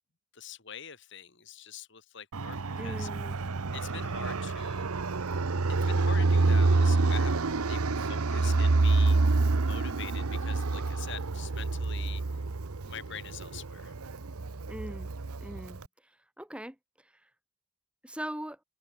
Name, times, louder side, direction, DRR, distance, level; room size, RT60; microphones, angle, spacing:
voice 1, 0.3-3.1 3.7-5.0 5.7-9.2 9.6-12.2 12.8-14.0, left 7 dB, 55° left, 2.3 m, -45 dB
Fixed-wing aircraft airplane, 2.3-15.8, right 3 dB, 85° right, 0.9 m, -27 dB
voice 2, 2.8-3.4 14.7-15.1 15.4-15.8 16.4-16.8 18.0-18.6, equal, 5° right, 2.0 m, -40 dB
head